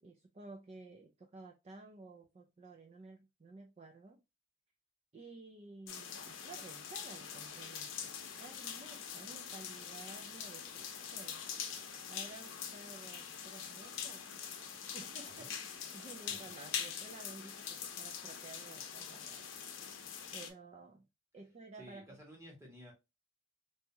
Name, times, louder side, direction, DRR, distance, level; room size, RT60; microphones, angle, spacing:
voice 1, 0.0-4.2 5.1-11.4 12.1-14.2 14.9-19.5 20.0-21.1 21.3-22.2, right 3 dB, 30° right, 0.3 m, -53 dB
sound 1, 5.9-20.5, left 7 dB, 60° left, 0.7 m, -44 dB
voice 2, 21.8-22.9, equal, 15° right, 1.3 m, -53 dB
3.4 x 2.7 x 2.8 m
head